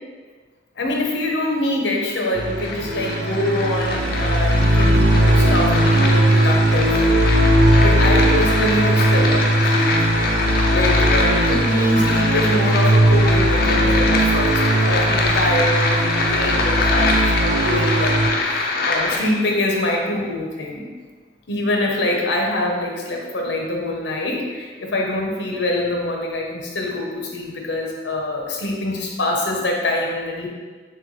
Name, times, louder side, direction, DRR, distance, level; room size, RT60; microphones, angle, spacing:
voice 1, 0.8-7.0 7.6-9.9 10.7-20.9 21.5-30.5, left 1 dB, 80° left, 0 dB, 0.8 m, -24 dB
sound 1, 1.8-19.2, left 3 dB, 55° left, 0.5 m, -24 dB
sound 2, 2.4-18.3, right 1 dB, 70° right, 0.4 m, -18 dB
6.7 x 2.3 x 3.1 m, 1.4 s
head